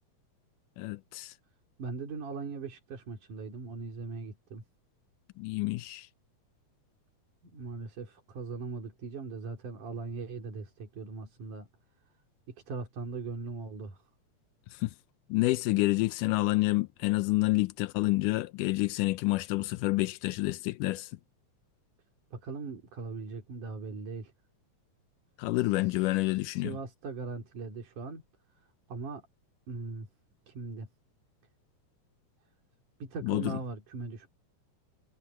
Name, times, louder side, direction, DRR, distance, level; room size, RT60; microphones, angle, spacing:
voice 1, 0.8-1.3 5.4-6.1 14.7-14.9 15.3-21.1 25.4-26.8 33.2-33.6, left 20 dB, 90° left, 2.2 m, -28 dB
voice 2, 1.8-4.6 7.4-11.7 12.5-14.0 22.3-24.3 25.6-28.2 28.9-29.2 29.7-30.1 30.5-30.9 33.0-34.3, right 4 dB, 75° right, 5.2 m, -40 dB
omnidirectional pair, 3.6 m